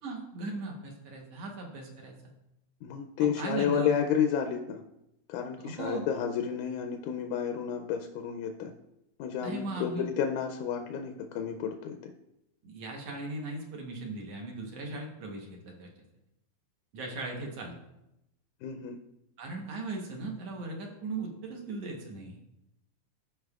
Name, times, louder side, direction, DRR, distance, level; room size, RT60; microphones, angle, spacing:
voice 1, 0.0-2.2 3.2-4.0 5.6-6.1 9.4-10.1 12.6-15.9 16.9-17.8 19.4-22.4, right 2 dB, 60° right, 0 dB, 2.0 m, -38 dB
voice 2, 2.8-4.8 5.3-8.7 9.2-12.1 18.6-19.0, left 7 dB, 85° left, 5 dB, 2.1 m, -31 dB
15.0 x 5.2 x 2.4 m, 0.87 s
omnidirectional pair, 3.5 m